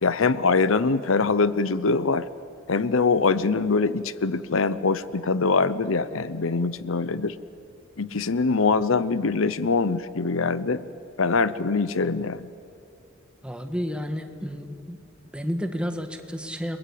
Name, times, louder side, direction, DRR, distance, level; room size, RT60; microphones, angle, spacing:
voice 1, 0.0-2.3 2.7-7.4 8.0-10.8 11.2-12.5, left 4 dB, 75° left, 16 dB, 0.8 m, -23 dB
voice 2, 13.4-15.0 15.3-16.8, equal, 5° right, 7 dB, 1.7 m, -31 dB
30.0 x 22.0 x 8.6 m, 2.4 s
head